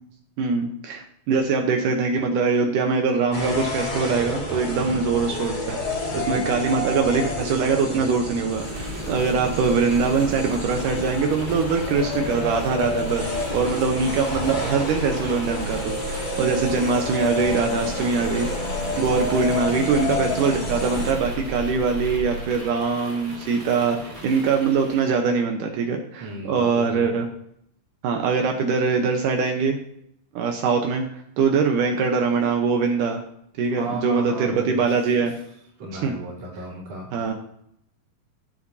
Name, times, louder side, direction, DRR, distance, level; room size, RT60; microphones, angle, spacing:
voice 1, 0.4-6.0 6.3-18.5 19.0-24.0 24.2-27.3 28.0-29.8 30.4-31.0 31.4-33.2 33.6-35.3 35.9-36.1 37.1-37.3, right 5 dB, 75° right, 3 dB, 2.5 m, -23 dB
sound 1, 3.3-21.1, equal, 15° left, 1.9 m, -32 dB
voice 2, 4.7-5.0 6.1-6.5 26.2-27.1 33.7-34.9 35.2-35.3 35.8-37.3, right 2 dB, 60° right, -7 dB, 4.6 m, -34 dB
sound 2, 5.1-7.8 8.2-8.3 8.9-20.6, left 3 dB, 75° left, 3.3 m, -32 dB
sound 3, 8.5-25.2, equal, 15° right, 1.9 m, -35 dB
17.5 x 7.6 x 2.8 m, 0.72 s
omnidirectional pair, 3.9 m